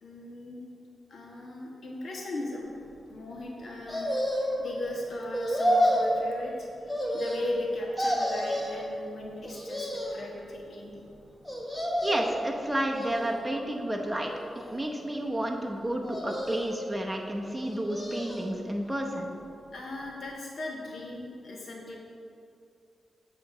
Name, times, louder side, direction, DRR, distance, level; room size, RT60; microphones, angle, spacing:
voice 1, 0.0-0.6 1.1-10.9 19.7-22.0, left 1 dB, 70° left, -1 dB, 1.3 m, -38 dB
sound 1, 3.9-4.7 5.3-6.2 6.9-7.7 8.0-8.8 9.4-10.3 11.5-12.4 12.9-13.6 14.2-15.0 16.0-16.9 17.6-18.5 18.9-19.0, equal, 5° left, 1.3 m, -30 dB
voice 2, 12.0-14.3 14.7-19.3, right 1 dB, 15° right, 1 dB, 0.8 m, -31 dB
7.9 x 3.0 x 5.8 m, 2.4 s
cardioid pair, 55°, 0 cm